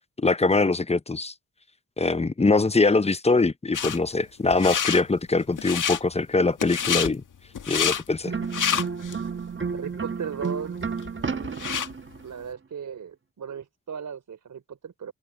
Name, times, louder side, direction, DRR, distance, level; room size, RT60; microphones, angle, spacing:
voice 1, 0.2-1.3 2.0-7.2 7.7-8.3, left 3 dB, 20° left, 0.8 m, -23 dB
sound 1, 3.7-4.0 4.5-5.0 5.5-6.0 6.6-7.1 7.5-8.0 8.4-9.2 9.7-9.8 10.4-10.5 10.8-11.9, left 8 dB, 85° left, 1.9 m, -27 dB
sound 2, 8.2-12.2, right 5 dB, 40° right, 1.3 m, -31 dB
voice 2, 9.7-10.8 11.3-11.8 12.2-15.1, right 7 dB, 80° right, 3.8 m, -37 dB
open air
cardioid pair, 55°, 31 cm